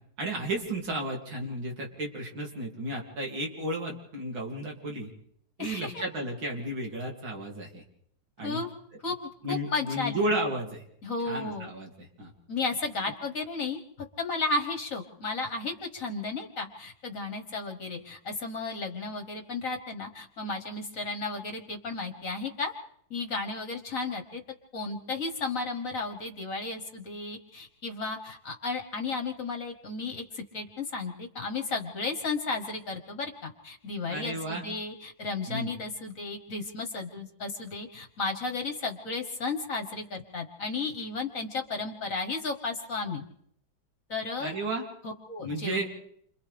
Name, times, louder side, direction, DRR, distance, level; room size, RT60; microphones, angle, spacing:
voice 1, 0.2-5.1 5.6-7.8 8.4-8.6 9.4-10.8 11.2-12.3 34.1-34.7 35.5-35.7 44.4-44.9 45.4-45.9, right 1 dB, 75° right, -1 dB, 3.6 m, -33 dB
voice 2, 5.6-6.0 8.4-8.7 9.0-9.2 9.5-10.2 11.0-11.7 12.5-22.7 23.1-24.4 24.7-43.2 44.1-44.5 45.0-45.8, left 3 dB, 45° left, 4 dB, 1.6 m, -34 dB
29.0 x 26.0 x 3.4 m, 0.69 s
omnidirectional pair, 2.1 m